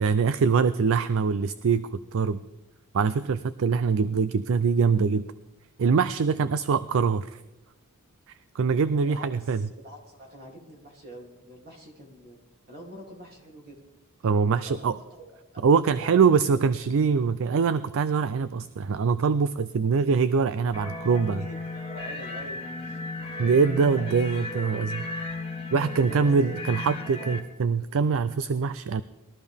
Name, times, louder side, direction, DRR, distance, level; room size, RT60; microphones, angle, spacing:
voice 1, 0.0-2.4 2.9-5.2 5.8-7.4 8.5-9.7 14.2-14.9 15.6-21.4 23.4-25.1 25.7-29.0, right 5 dB, 65° right, 14 dB, 0.4 m, -23 dB
voice 2, 8.9-12.4 12.7-13.8 14.7-15.2 15.5-16.2 21.0-23.0 23.4-23.5 23.9-24.1 24.5-24.7 26.1-26.3 27.0-27.1, equal, 45° right, 0 dB, 2.9 m, -45 dB
sound 1, 20.7-27.4, left 2 dB, 25° left, 1.6 m, -35 dB
20.5 x 13.0 x 3.5 m, 1.0 s
head